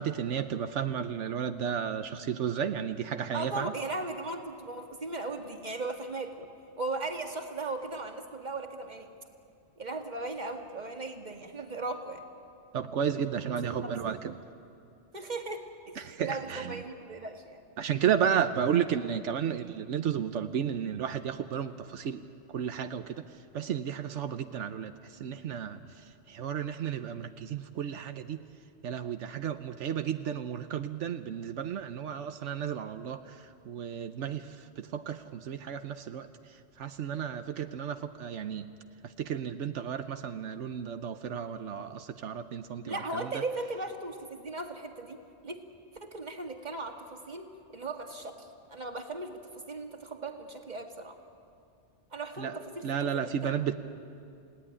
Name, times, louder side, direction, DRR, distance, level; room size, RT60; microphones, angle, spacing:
voice 1, 0.0-3.7 12.7-14.3 16.0-16.7 17.8-22.2 22.5-23.2 23.5-24.9 25.2-25.8 26.3-28.4 28.8-33.4 33.7-36.3 36.8-38.7 39.2-43.3 52.4-52.6 52.8-53.7, right 8 dB, 85° right, 8 dB, 1.1 m, -33 dB
voice 2, 3.3-6.5 6.8-9.1 9.8-12.2 13.8-14.0 15.1-17.6 17.9-18.0 42.8-45.6 45.9-51.2 52.1-53.5, right 2 dB, 40° right, 3 dB, 2.0 m, -37 dB
29.5 x 17.5 x 9.9 m, 2.5 s
omnidirectional pair, 1.2 m